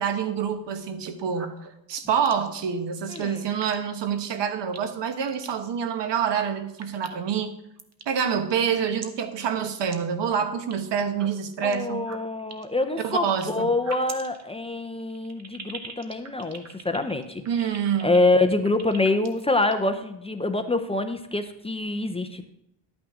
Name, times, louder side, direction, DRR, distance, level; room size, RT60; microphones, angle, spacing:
voice 1, 0.0-1.5 1.9-7.5 8.1-12.0 13.0-13.7 17.4-18.1, right 7 dB, 70° right, 9 dB, 1.2 m, -27 dB
sound 1, 0.9-1.7 2.2-2.6 3.0-3.2 3.6-3.8 4.1-4.2 4.7-4.9 5.3-5.5 6.2-6.5 6.8-7.4 7.8-8.1 8.4-9.0 9.4-9.5 9.8-9.9 10.2-10.7 11.1-11.7 12.0-13.4 13.8-19.8, right 5 dB, 35° right, 1.0 m, -42 dB
voice 2, 3.1-3.5 11.6-17.7 18.0-22.4, left 2 dB, 15° left, 7 dB, 0.5 m, -26 dB
12.0 x 8.8 x 3.6 m, 0.80 s
wide cardioid pair, 155°, 44 cm